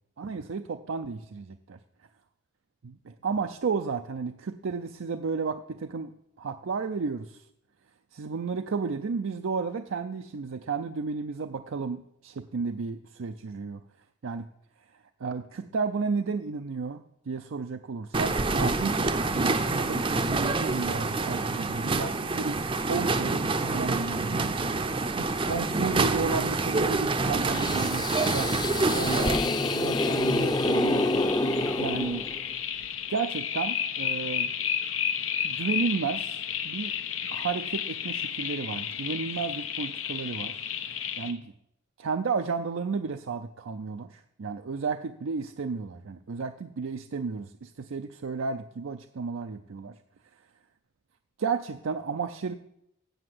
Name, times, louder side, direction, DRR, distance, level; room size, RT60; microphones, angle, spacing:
voice 1, 0.2-1.8 2.8-6.1 6.4-7.4 8.1-13.8 14.2-14.4 15.2-24.7 25.4-31.3 31.8-32.2 33.1-34.5 35.4-36.9 37.3-40.5 41.2-41.5 42.0-49.9 51.4-52.5, right 5 dB, 80° right, 7 dB, 0.5 m, -33 dB
sound 1, 18.1-29.4, right 3 dB, 25° right, 0.5 m, -27 dB
sound 2, 27.5-32.6, left 1 dB, 20° left, 0.6 m, -27 dB
sound 3, 29.2-41.3, left 8 dB, 90° left, 1.0 m, -32 dB
7.9 x 7.4 x 7.8 m, 0.78 s
head